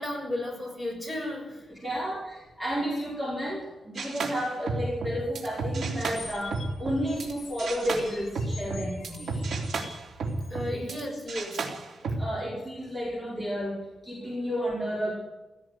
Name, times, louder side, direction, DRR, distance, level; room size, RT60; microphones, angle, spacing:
voice 1, 0.0-1.9 10.5-11.7 12.0-12.2, left 1 dB, ahead, 0 dB, 6.7 m, -34 dB
voice 2, 1.7-9.5 10.7-10.9 12.2-15.1, equal, 20° right, -4 dB, 5.1 m, -32 dB
sound 1, 4.0-7.3 7.6-11.0 11.3-12.3, right 3 dB, 80° right, 3.5 m, -32 dB
sound 2, 6.1-10.7, left 4 dB, 50° left, 4.2 m, -46 dB
17.0 x 16.0 x 9.7 m, 1.1 s
wide cardioid pair, 165°, 0 cm